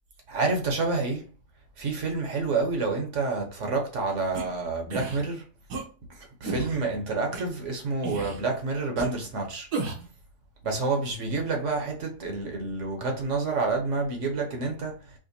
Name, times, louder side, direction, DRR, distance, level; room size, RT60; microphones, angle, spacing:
voice 1, 0.3-1.2 1.8-5.4 6.4-9.7 10.6-14.9, right 3 dB, 55° right, 1.0 m, -28 dB
sound 1, 4.3-4.4 4.9-5.2 5.7-5.8 6.4-6.8 7.3-7.4 8.0-8.4 9.0-9.1 9.7-10.1, right 3 dB, 75° right, 1.4 m, -32 dB
5.0 x 2.2 x 2.6 m
omnidirectional pair, 1.7 m